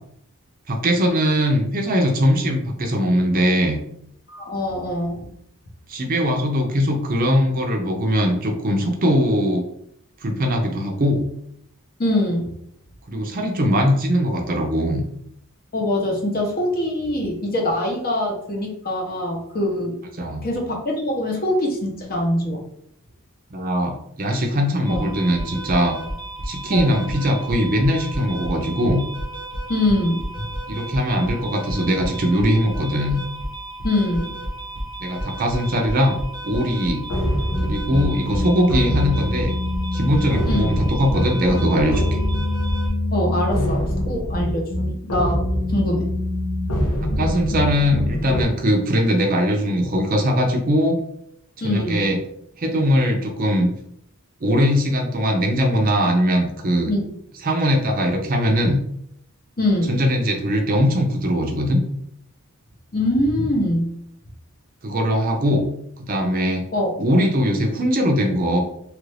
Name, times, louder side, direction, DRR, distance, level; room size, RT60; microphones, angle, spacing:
voice 1, 0.7-3.8 5.9-9.6 10.2-11.2 13.1-15.0 20.2-20.5 23.5-26.0 26.4-29.0 30.7-33.2 35.0-37.0 37.6-39.5 39.9-42.2 47.2-51.0 51.6-52.2 52.6-53.7 54.4-56.9 57.4-58.8 59.9-61.8 64.8-65.6 66.0-66.6 67.0-68.6, equal, 40° right, 3 dB, 0.5 m, -20 dB
voice 2, 4.3-5.3 12.0-12.5 15.7-22.6 24.9-25.1 26.7-26.9 29.7-30.5 33.8-34.4 40.5-40.7 43.1-44.6 45.0-46.1 51.6-52.0 56.9-57.1 59.6-60.0 62.9-63.9 66.7-66.9, left 1 dB, 40° left, 1 dB, 0.7 m, -23 dB
sound 1, 24.8-42.9, right 1 dB, 55° left, 1.0 m, -32 dB
sound 2, 37.1-48.4, left 1 dB, 85° left, 0.8 m, -24 dB
3.1 x 2.5 x 3.2 m, 0.71 s
head